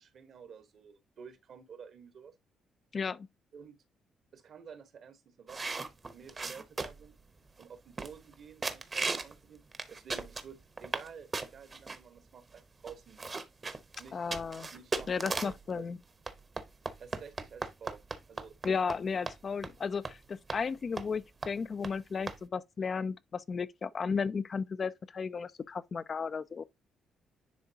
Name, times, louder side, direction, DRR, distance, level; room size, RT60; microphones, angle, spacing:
voice 1, 0.0-2.3 3.5-3.8 4.3-5.8 6.1-7.2 7.6-13.2 14.0-14.4 14.7-15.9 17.0-18.0 18.3-18.5, right 6 dB, 60° right, 1.3 m, -51 dB
voice 2, 2.9-3.3 14.1-14.7 15.1-16.0 18.6-26.6, left 5 dB, 40° left, 0.4 m, -34 dB
sound 1, 5.5-7.1 7.6-7.7 8.0-8.3 8.6-9.3 9.7-11.1 11.3-12.0 12.6-12.7 12.9-15.6 16.3-19.0 19.3-19.4 19.6-19.8 20.0-20.2 20.5-20.6 21.0-21.2 21.4-21.5 21.8-21.9 22.3-22.4, right 3 dB, 30° right, 0.9 m, -37 dB
10.0 x 3.5 x 2.8 m
cardioid pair, 90°, 0 cm